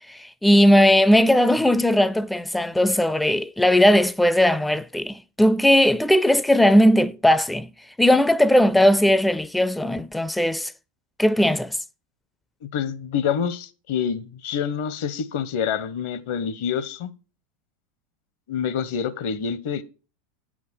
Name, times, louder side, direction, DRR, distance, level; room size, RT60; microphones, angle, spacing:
voice 1, 0.1-7.7 8.0-10.7 11.2-11.8, equal, 5° left, 0.4 m, -18 dB
voice 2, 12.6-17.1 18.5-19.8, left 7 dB, 60° left, 0.9 m, -27 dB
9.5 x 4.9 x 5.9 m
hypercardioid pair, 85°, 0 cm